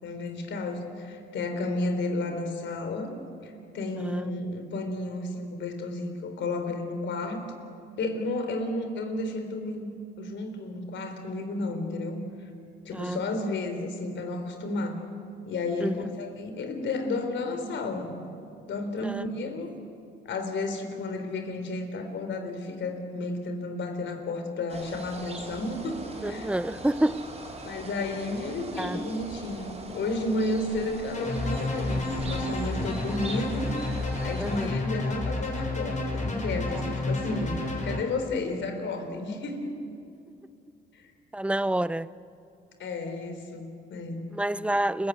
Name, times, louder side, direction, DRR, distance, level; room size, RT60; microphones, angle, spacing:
voice 1, 0.0-3.1 3.4-7.5 8.0-9.9 10.2-12.2 12.8-15.0 15.5-18.3 18.7-19.7 20.2-26.5 27.6-33.7 34.2-39.7 40.9-41.1 42.8-44.2, left 2 dB, 70° left, 4.0 m, -32 dB
voice 2, 4.0-4.3 12.9-13.2 15.8-16.1 19.0-19.2 26.2-27.4 28.8-29.0 34.4-34.7 36.7-36.8 41.3-42.1 44.3-45.1, right 1 dB, 5° right, 0.6 m, -28 dB
sound 1, 24.7-34.7, right 2 dB, 30° right, 5.2 m, -41 dB
sound 2, 31.1-38.0, left 2 dB, 35° left, 6.5 m, -30 dB
29.0 x 15.5 x 9.4 m
cardioid pair, 90°, 20 cm